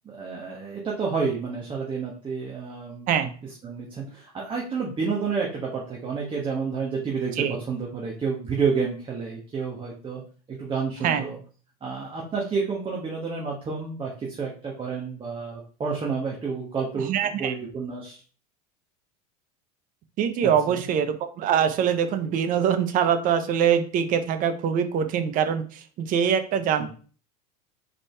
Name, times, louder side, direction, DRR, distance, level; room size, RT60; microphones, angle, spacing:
voice 1, 0.0-3.1 3.6-10.2 10.5-11.4 11.8-18.2 20.4-20.8 26.8-26.9, right 5 dB, 25° right, -2 dB, 1.1 m, -30 dB
voice 2, 17.1-17.5 20.2-26.9, right 8 dB, 45° right, 9 dB, 0.7 m, -23 dB
4.0 x 3.5 x 3.2 m, 0.40 s
hypercardioid pair, 95°, 20 cm